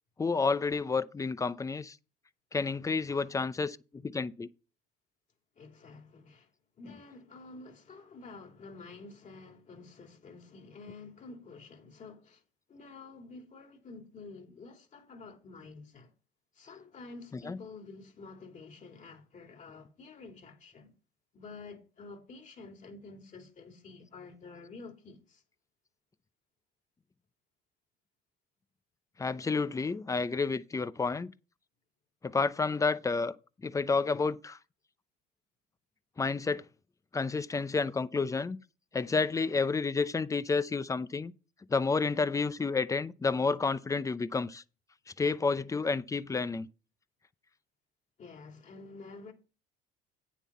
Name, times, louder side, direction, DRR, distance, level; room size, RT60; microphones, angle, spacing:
voice 1, 0.2-2.0 2.5-4.5 17.5-17.6 29.2-31.3 32.2-33.3 33.6-34.6 36.2-36.6 37.1-38.6 38.9-41.3 41.7-44.6 45.2-46.7, left 4 dB, 15° left, 0.6 m, -30 dB
voice 2, 5.5-6.5 6.8-12.4 12.7-16.1 16.5-20.9 21.3-25.4 48.2-49.3, left 3 dB, 40° left, 2.8 m, -49 dB
9.2 x 7.3 x 4.2 m
supercardioid pair, 100°, 20 cm